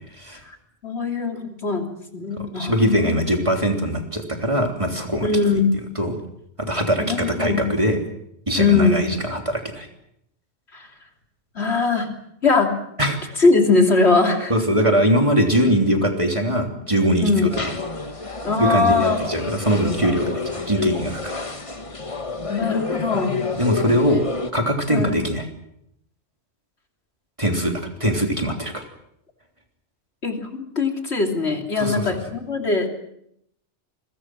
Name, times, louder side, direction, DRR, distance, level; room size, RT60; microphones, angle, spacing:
voice 1, 0.8-3.1 5.2-5.8 7.1-7.6 8.6-9.0 10.7-10.9 11.5-12.1 12.4-12.7 13.4-14.5 17.2-17.5 18.4-19.2 22.5-23.4 24.9-25.2 30.2-32.9, left 4 dB, 65° left, 3 dB, 3.4 m, -21 dB
voice 2, 2.6-5.3 6.0-6.1 6.6-8.0 8.5-9.9 13.0-13.2 14.5-17.5 18.6-21.3 23.6-24.2 24.5-25.4 27.4-28.8 31.8-32.0, equal, 25° right, 3 dB, 3.4 m, -21 dB
sound 1, 17.5-24.5, left 4 dB, 30° left, 1.5 m, -29 dB
28.0 x 23.0 x 6.2 m, 0.74 s
omnidirectional pair, 1.2 m